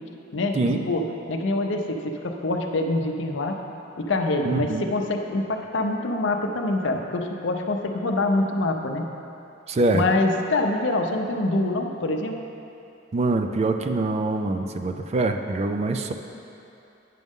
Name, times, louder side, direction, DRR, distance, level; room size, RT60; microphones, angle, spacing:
voice 1, 0.3-3.6 4.0-9.1 9.9-12.3, left 2 dB, 65° left, 3 dB, 0.6 m, -25 dB
voice 2, 4.4-4.9 9.7-10.0 13.1-16.1, right 2 dB, 35° right, 6 dB, 0.4 m, -24 dB
9.2 x 6.4 x 3.6 m, 2.7 s
head